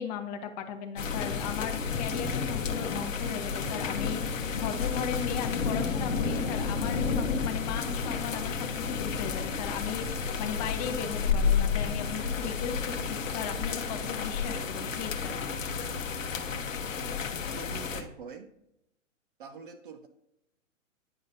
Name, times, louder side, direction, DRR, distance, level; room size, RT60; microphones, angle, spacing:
voice 1, 0.0-15.3, left 7 dB, 30° left, 6 dB, 0.8 m, -37 dB
sound 1, 1.0-18.0, left 5 dB, 70° left, 0.9 m, -31 dB
voice 2, 17.5-18.5 19.4-20.1, right 6 dB, 40° right, 8 dB, 0.5 m, -44 dB
9.6 x 5.1 x 2.6 m, 0.83 s
figure-of-eight pair, 120°, 39 cm